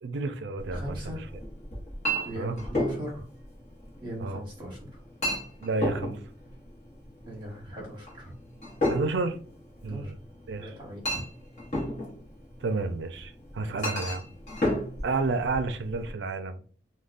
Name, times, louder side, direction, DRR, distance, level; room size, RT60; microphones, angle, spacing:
voice 1, 0.0-1.2 2.4-2.6 4.2-4.4 5.6-6.2 8.9-9.4 9.8-10.2 10.5-10.7 12.6-14.2 15.0-16.6, right 3 dB, 75° right, 0.4 m, -30 dB
Chink clink, 0.6-16.1, equal, 40° left, 0.9 m, -34 dB
voice 2, 0.7-1.2 2.2-3.2 4.0-5.0 7.2-8.3 9.8-10.1 10.6-11.2 13.6-13.8, equal, 25° right, 1.0 m, -39 dB
3.4 x 2.2 x 2.4 m
head